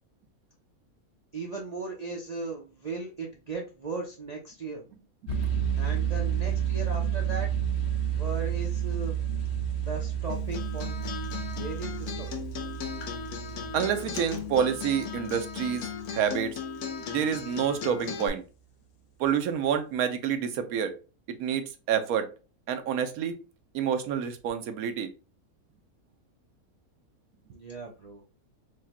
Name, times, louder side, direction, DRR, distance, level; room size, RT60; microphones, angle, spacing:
voice 1, 1.3-4.8 5.8-7.5 8.2-9.2 9.9-11.0 11.5-12.7 27.5-28.2, right 3 dB, 60° right, 0.4 m, -37 dB
sound 1, 5.3-16.1, right 9 dB, 60° left, 0.7 m, -31 dB
Acoustic guitar, 10.3-18.3, left 7 dB, 85° left, 1.2 m, -37 dB
voice 2, 13.7-16.6 17.1-18.4 19.2-20.9 21.3-22.3 22.7-23.4 23.7-25.1, right 8 dB, 75° right, 1.0 m, -28 dB
4.7 x 2.2 x 2.8 m
omnidirectional pair, 1.6 m